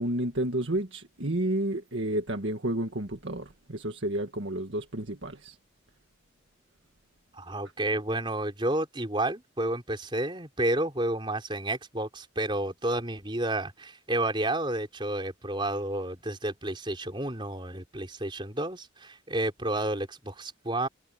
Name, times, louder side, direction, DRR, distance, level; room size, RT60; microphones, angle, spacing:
voice 1, 0.0-5.6, right 1 dB, 65° right, 1.8 m, -31 dB
voice 2, 7.4-20.9, right 1 dB, 25° right, 4.8 m, -31 dB
head